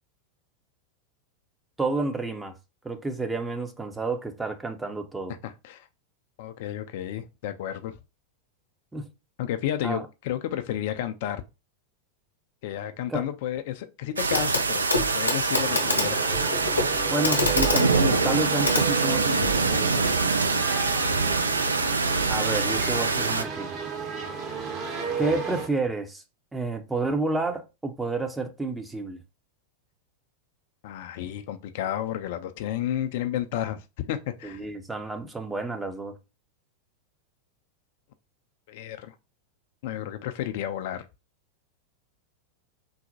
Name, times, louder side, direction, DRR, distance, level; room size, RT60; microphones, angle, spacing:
voice 1, 1.8-2.5 2.8-5.3 8.9-9.1 9.8-10.1 13.1-13.2 17.1-20.3 22.3-23.7 25.2-26.2 26.5-29.2 34.4-36.1, right 3 dB, 10° right, 0.5 m, -30 dB
voice 2, 5.4-5.9 6.4-8.0 9.4-11.4 12.6-14.9 15.1-16.3 20.9-21.4 25.2-25.4 30.8-34.6 38.7-39.1 39.8-41.1, left 11 dB, 50° left, 0.3 m, -32 dB
sound 1, 14.2-23.4, right 4 dB, 75° right, 0.3 m, -25 dB
Clock, 14.3-14.6 14.9-19.6 20.8-20.9, left 2 dB, 80° left, 0.8 m, -28 dB
sound 2, 15.5-25.7, right 5 dB, 35° right, 0.9 m, -34 dB
3.9 x 2.1 x 2.7 m
figure-of-eight pair, 90°, 0 cm